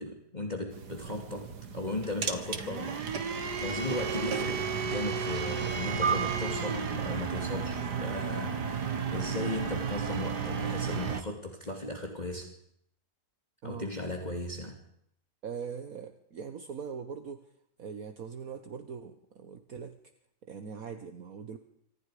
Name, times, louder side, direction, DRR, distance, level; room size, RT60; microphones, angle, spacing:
voice 1, 0.0-12.5 13.6-14.8, left 2 dB, 25° left, 2 dB, 2.8 m, -37 dB
sound 1, 0.7-11.2, right 6 dB, 80° right, 2.4 m, -33 dB
sound 2, 6.0-8.7, right 6 dB, 15° right, 4.0 m, -35 dB
voice 2, 15.4-17.4 17.8-20.0 20.4-21.6, right 6 dB, 60° right, 8 dB, 1.8 m, -41 dB
28.0 x 25.5 x 5.1 m, 0.72 s
omnidirectional pair, 1.7 m